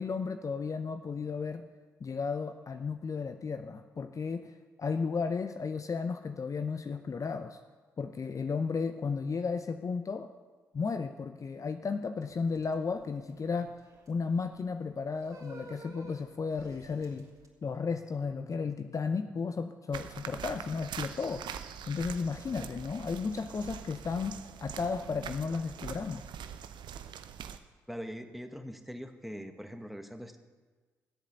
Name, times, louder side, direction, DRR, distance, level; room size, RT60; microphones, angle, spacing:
voice 1, 0.0-1.6 2.0-4.5 4.8-7.6 8.0-10.3 10.7-13.8 14.1-17.3 17.6-21.5 21.9-26.3, left 5 dB, 40° left, 9 dB, 0.6 m, -34 dB
sound 1, 12.2-17.5, right 3 dB, 40° right, 2.8 m, -52 dB
sound 2, 19.9-27.6, right 8 dB, 60° right, 0.7 m, -43 dB
voice 2, 27.9-30.4, equal, ahead, 7 dB, 1.3 m, -42 dB
14.5 x 8.2 x 6.8 m, 1.4 s
hypercardioid pair, 40°, 9 cm